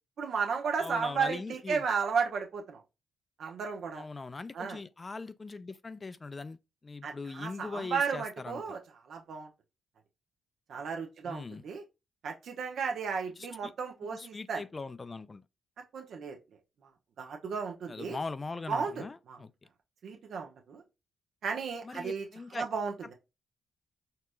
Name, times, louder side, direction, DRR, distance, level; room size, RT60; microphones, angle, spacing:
voice 1, 0.2-2.8 3.4-4.0 4.5-4.8 7.0-8.8 9.1-9.5 10.7-11.8 12.2-14.6 15.9-16.4 17.2-18.2 18.7-19.4 20.0-20.8 21.4-22.3 22.5-23.1, right 5 dB, 65° right, 1.1 m, -34 dB
voice 2, 0.8-1.8 3.9-6.6 6.8-8.6 11.3-11.6 13.4-13.7 14.1-15.4 17.9-19.5 21.8-22.7, left 3 dB, 35° left, 0.4 m, -40 dB
4.5 x 2.8 x 2.3 m
hypercardioid pair, 45°, 0 cm